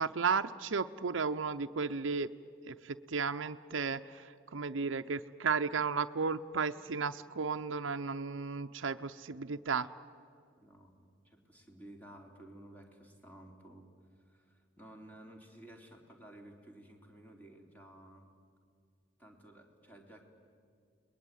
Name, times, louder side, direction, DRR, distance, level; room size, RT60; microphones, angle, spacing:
voice 1, 0.0-2.3 2.7-9.9, right 5 dB, 85° right, 8 dB, 0.7 m, -34 dB
voice 2, 10.6-13.9 14.2-18.3 19.2-20.2, right 1 dB, 10° left, 2 dB, 3.3 m, -54 dB
30.0 x 21.0 x 9.1 m, 2.3 s
head